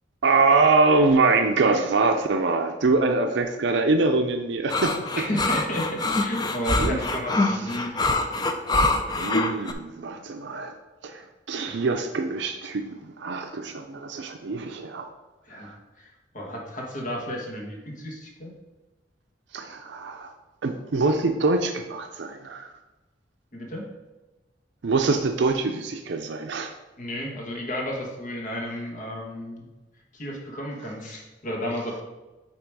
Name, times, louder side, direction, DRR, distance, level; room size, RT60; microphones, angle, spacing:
voice 1, 0.2-5.0 6.8-7.0 9.2-10.7 11.0-15.1 15.7-15.8 19.5-20.3 20.6-22.7 24.8-26.7, right 3 dB, 70° right, 5 dB, 0.5 m, -24 dB
sound 1, 4.7-9.7, left 2 dB, 20° left, 0.5 m, -24 dB
voice 2, 5.1-7.9 11.7-11.8 15.4-18.5 23.5-23.8 27.0-29.7 30.1-32.0, equal, 45° left, -1 dB, 1.4 m, -33 dB
8.7 x 2.9 x 4.7 m, 1.1 s
head